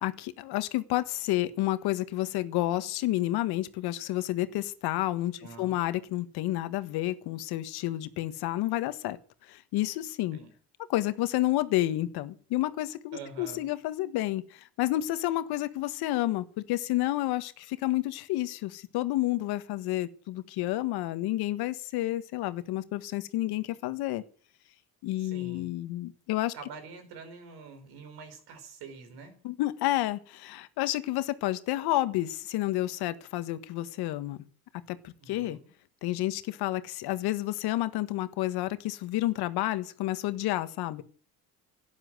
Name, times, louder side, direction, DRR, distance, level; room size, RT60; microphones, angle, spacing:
voice 1, 0.0-9.2 9.5-10.4 10.9-24.2 25.0-26.5 29.4-34.4 34.9-35.6 36.0-41.0, left 16 dB, 75° left, 1.5 m, -30 dB
voice 2, 5.4-5.8 10.3-10.5 13.1-13.7 25.2-25.7 26.5-29.3 35.2-35.7, right 5 dB, 70° right, 5.1 m, -46 dB
12.0 x 10.5 x 7.8 m
supercardioid pair, 85°, 39 cm